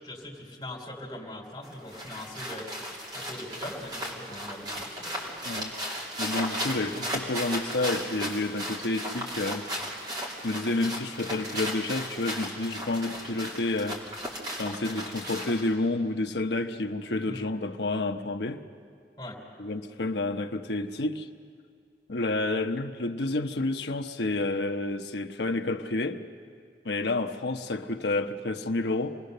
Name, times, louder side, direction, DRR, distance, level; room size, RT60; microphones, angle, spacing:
voice 1, 0.0-2.7 3.1-5.4 17.3-17.5 19.2-19.4, left 1 dB, 20° left, 3.5 m, -41 dB
sound 1, 1.6-15.7, equal, 25° right, 2.8 m, -36 dB
voice 2, 6.2-9.7 10.4-14.0 14.6-18.6 19.6-21.3 22.1-26.2 26.8-29.2, left 2 dB, 80° left, 0.9 m, -29 dB
26.5 x 19.5 x 6.7 m
head